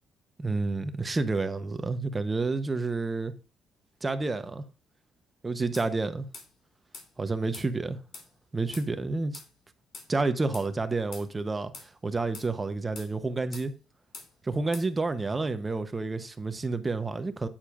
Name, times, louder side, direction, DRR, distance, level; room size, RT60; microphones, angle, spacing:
voice 1, 0.4-3.3 4.0-4.6 5.4-6.3 7.2-8.0 8.5-9.4 10.1-13.7 14.4-17.5, right 3 dB, 25° right, 0.8 m, -29 dB
sound 1, 5.7-5.9 6.3-6.5 6.9-7.1 7.5-7.7 8.1-8.3 8.7-8.9 9.3-9.5 9.9-10.1 10.5-10.7 11.1-11.3 11.7-11.9 12.3-12.5 13.0-13.1 13.5-13.7 14.1-14.3 14.7-14.9, left 4 dB, 60° left, 3.0 m, -44 dB
8.9 x 8.9 x 2.5 m
cardioid pair, 90°, 0 cm